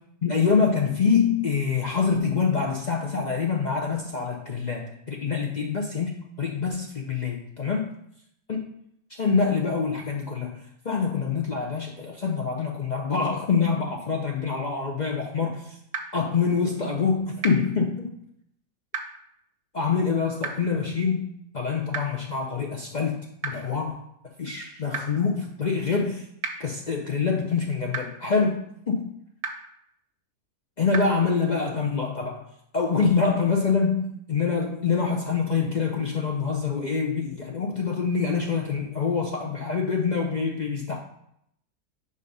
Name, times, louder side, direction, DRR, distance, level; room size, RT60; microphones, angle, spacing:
voice 1, 0.2-7.8 8.5-8.6 9.2-10.6 10.8-15.8 16.1-18.2 19.7-24.0 24.4-26.2 26.6-29.1 30.8-32.4 32.7-41.0, left 5 dB, 50° left, 0 dB, 0.5 m, -25 dB
sound 1, 15.9-16.0 17.4-17.5 18.9-19.0 20.4-20.5 21.9-22.0 23.4-23.5 24.9-25.0 26.4-26.5 27.9-28.0 29.4-29.5 30.9-31.0, right 6 dB, 45° right, 0.8 m, -30 dB
5.3 x 4.0 x 5.3 m, 0.74 s
omnidirectional pair, 1.5 m